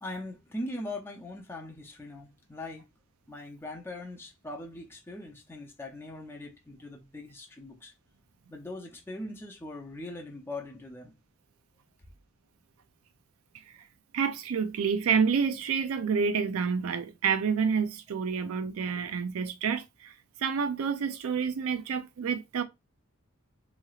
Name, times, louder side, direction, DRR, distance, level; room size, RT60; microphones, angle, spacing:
voice 1, 0.0-2.9 3.3-7.9 8.5-11.2, left 1 dB, 10° left, 0.5 m, -41 dB
voice 2, 14.1-20.1 20.4-22.6, right 6 dB, 80° right, 0.4 m, -28 dB
3.1 x 2.8 x 2.3 m
head